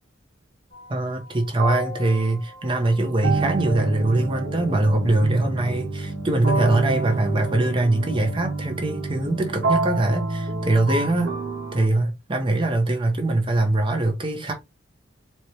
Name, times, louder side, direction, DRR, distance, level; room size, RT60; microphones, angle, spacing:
sound 1, 0.7-0.9 1.6-11.9, right 3 dB, 85° right, 1.2 m, -28 dB
voice 1, 0.9-11.3 11.7-14.5, right 2 dB, 25° right, 0.7 m, -22 dB
4.3 x 2.1 x 3.1 m
head